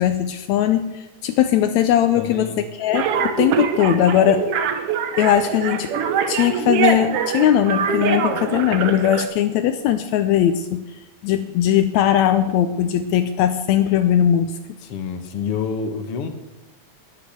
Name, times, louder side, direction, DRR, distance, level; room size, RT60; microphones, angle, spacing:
voice 1, 0.0-2.5 2.8-4.5 5.2-5.9 6.3-10.8 11.2-14.5, left 10 dB, 85° left, 9 dB, 1.6 m, -19 dB
voice 2, 2.2-2.7 14.8-16.3, left 6 dB, 60° left, 7 dB, 1.7 m, -28 dB
sound 1, 2.9-9.2, right 6 dB, 65° right, 1.5 m, -23 dB
11.0 x 10.5 x 7.9 m, 1.0 s
omnidirectional pair, 3.9 m